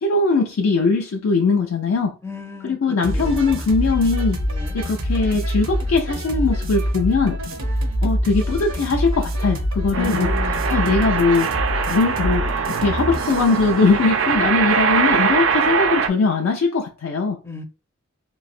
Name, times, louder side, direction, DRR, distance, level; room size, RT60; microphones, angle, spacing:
voice 1, 0.0-2.1 2.6-4.4 4.7-7.4 8.0-10.3 10.7-11.5 11.9-17.4, left 4 dB, 75° left, 0.4 m, -20 dB
voice 2, 2.2-3.5 4.5-4.8 9.9-10.7 17.4-17.6, left 4 dB, 10° left, 0.4 m, -32 dB
sound 1, 3.0-13.6, equal, 80° right, 0.8 m, -25 dB
sound 2, 9.9-16.1, right 6 dB, 65° right, 0.4 m, -22 dB
3.1 x 2.7 x 2.5 m
head